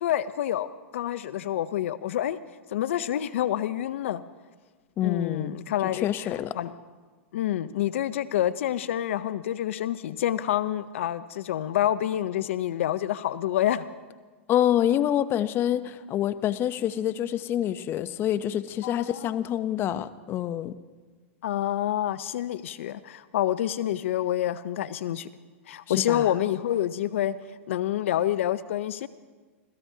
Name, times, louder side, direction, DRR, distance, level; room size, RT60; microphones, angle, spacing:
voice 1, 0.0-2.4 2.7-4.2 5.0-6.1 6.5-6.7 7.3-13.8 18.8-19.4 21.4-25.3 25.7-27.4 27.7-29.1, left 12 dB, 70° left, 15 dB, 0.6 m, -27 dB
voice 2, 5.0-5.6 5.9-6.6 14.5-20.8 25.9-26.3, left 11 dB, 30° left, 14 dB, 0.6 m, -27 dB
26.5 x 17.0 x 2.8 m, 1.4 s
hypercardioid pair, 120°, 7 cm